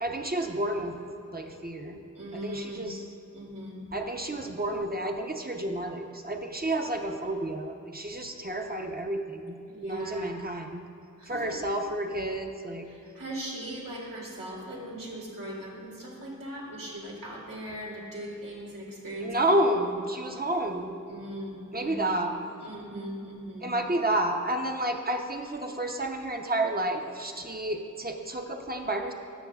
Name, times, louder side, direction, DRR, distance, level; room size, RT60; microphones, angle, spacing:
voice 1, 0.0-0.9 1.3-2.0 2.3-3.0 3.9-9.5 9.8-10.8 11.3-12.9 19.2-21.0 21.7-22.3 23.6-29.1, right 1 dB, 30° right, 3 dB, 0.7 m, -30 dB
voice 2, 2.1-2.8 3.3-3.8 9.7-10.4 11.2-11.6 12.9-19.5 21.1-22.1 22.6-23.7, right 1 dB, 85° right, -4 dB, 1.8 m, -39 dB
13.0 x 6.5 x 2.4 m, 2.7 s
wide cardioid pair, 45°, 33 cm